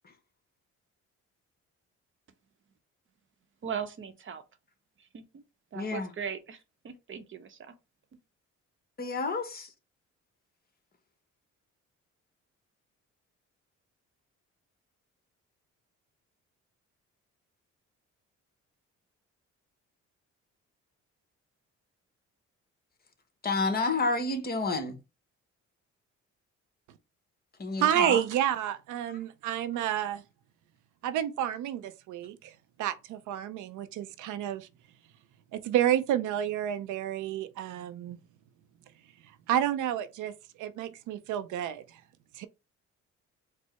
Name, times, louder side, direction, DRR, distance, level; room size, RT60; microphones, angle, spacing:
voice 1, 3.6-4.4 5.0-5.4 5.7-7.7, right 7 dB, 40° right, 0.7 m, -39 dB
voice 2, 5.7-6.1 9.0-9.7 23.4-25.0 27.6-28.2, left 3 dB, 30° left, 1.0 m, -30 dB
voice 3, 27.8-30.2 31.0-34.7 35.5-38.2 39.5-42.0 42.3-42.5, right 11 dB, 80° right, 0.5 m, -30 dB
4.5 x 2.0 x 4.2 m
cardioid pair, 90°, 30 cm